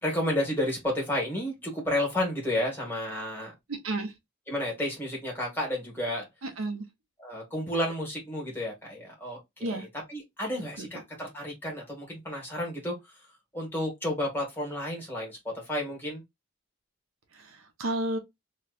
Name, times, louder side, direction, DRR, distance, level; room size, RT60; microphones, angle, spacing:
voice 1, 0.0-3.5 4.5-6.2 7.2-13.1 13.5-16.2, left 1 dB, 10° left, 1.6 m, -31 dB
voice 2, 3.7-4.1 6.4-6.8 9.6-9.8 10.8-10.9 17.3-18.2, right 2 dB, 80° right, 0.9 m, -32 dB
3.1 x 2.9 x 2.4 m
head